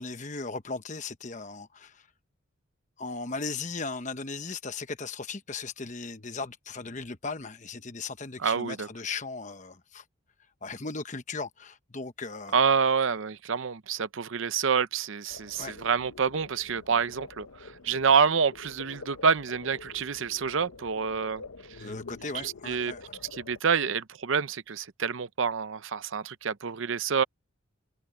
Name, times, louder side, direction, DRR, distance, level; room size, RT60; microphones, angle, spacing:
voice 1, 0.0-2.1 3.0-10.0 10.6-12.6 15.6-15.7 21.8-23.0, left 4 dB, 35° left, 1.0 m, -37 dB
voice 2, 8.4-8.9 12.5-21.4 21.8-21.9 22.3-22.9 23.3-27.2, right 6 dB, 65° right, 0.6 m, -27 dB
sound 1, 15.3-23.6, left 4 dB, 85° left, 0.8 m, -47 dB
head